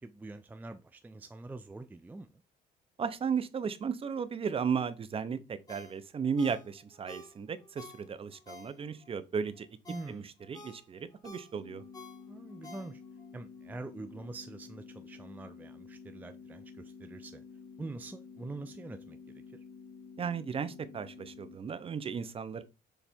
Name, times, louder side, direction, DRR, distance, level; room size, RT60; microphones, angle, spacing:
voice 1, 0.0-2.4 9.9-10.3 12.3-13.0 13.3-17.4 17.8-19.6, right 2 dB, 10° right, 0.4 m, -45 dB
voice 2, 3.0-9.7 10.1-10.2 10.5-11.8 20.2-22.6, right 6 dB, 35° right, 0.7 m, -35 dB
Ringtone, 5.7-9.1 9.5-13.3 13.7-13.8, left 3 dB, 20° left, 1.6 m, -51 dB
sound 1, 11.5-21.5, left 5 dB, 85° left, 0.8 m, -50 dB
6.9 x 3.2 x 4.4 m
cardioid pair, 110°, 17 cm